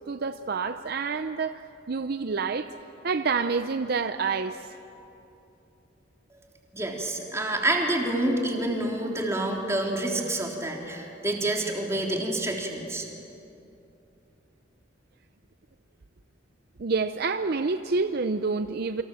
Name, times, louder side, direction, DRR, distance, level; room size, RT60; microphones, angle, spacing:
voice 1, 0.1-1.6 1.9-2.7 3.0-4.6 16.8-19.0, right 4 dB, 55° right, 10 dB, 0.6 m, -28 dB
voice 2, 6.7-13.1, right 1 dB, 15° right, 0 dB, 3.5 m, -28 dB
28.5 x 25.5 x 7.6 m, 2.8 s
head